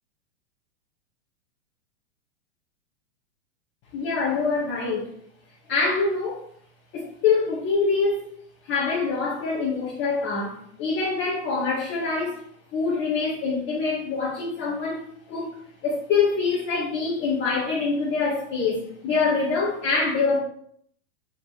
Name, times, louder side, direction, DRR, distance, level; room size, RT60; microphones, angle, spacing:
voice 1, 3.9-5.1 5.7-6.4 6.9-8.3 8.6-12.4 12.7-20.4, left 4 dB, 30° left, -7 dB, 2.3 m, -25 dB
6.0 x 4.9 x 5.4 m, 0.63 s
figure-of-eight pair, 95°, 34 cm